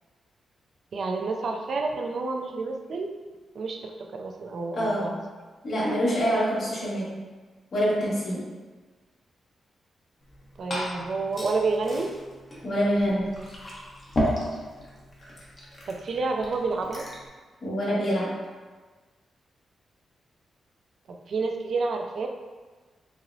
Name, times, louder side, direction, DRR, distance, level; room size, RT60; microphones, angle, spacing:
voice 1, 0.9-3.1 3.5-5.2 10.6-12.1 15.9-17.1 21.1-22.3, right 3 dB, 55° right, 3 dB, 0.3 m, -29 dB
voice 2, 4.7-5.1 5.6-7.1 7.7-8.4 12.6-13.3 17.6-18.3, equal, 50° left, -7 dB, 1.3 m, -25 dB
Glass / Fill (with liquid), 10.2-17.3, equal, 30° left, 0.8 m, -34 dB
5.3 x 2.0 x 2.6 m, 1.4 s
wide cardioid pair, 140°, 0 cm